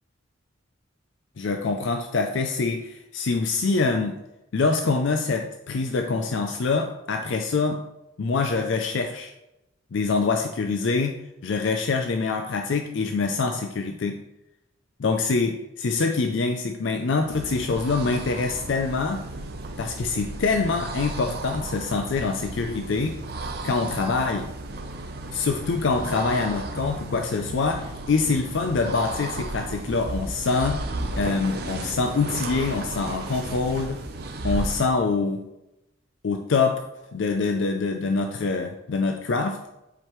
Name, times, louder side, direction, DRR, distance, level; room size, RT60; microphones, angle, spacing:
voice 1, 1.4-4.2 4.5-7.8 8.2-9.3 9.9-14.2 15.0-19.2 19.8-23.2 23.6-24.5 25.3-30.8 31.1-34.0 34.4-35.4 36.2-36.8 37.1-39.6, left 4 dB, 65° left, 5 dB, 0.4 m, -25 dB
sound 1, 17.1-35.0, right 2 dB, 50° right, 0.6 m, -34 dB
7.4 x 4.9 x 3.1 m, 0.91 s
head